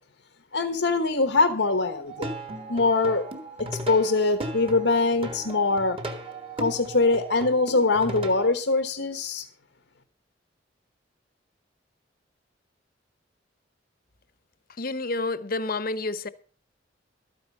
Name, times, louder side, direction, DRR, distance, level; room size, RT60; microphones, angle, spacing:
voice 1, 0.5-2.3 2.7-3.2 3.9-6.0 6.6-9.4, left 3 dB, 90° left, 1.3 m, -23 dB
Plucked string instrument, 2.1-8.5, right 1 dB, 30° right, 1.4 m, -36 dB
voice 2, 14.8-16.3, left 3 dB, 50° left, 0.9 m, -29 dB
13.0 x 9.1 x 5.5 m
head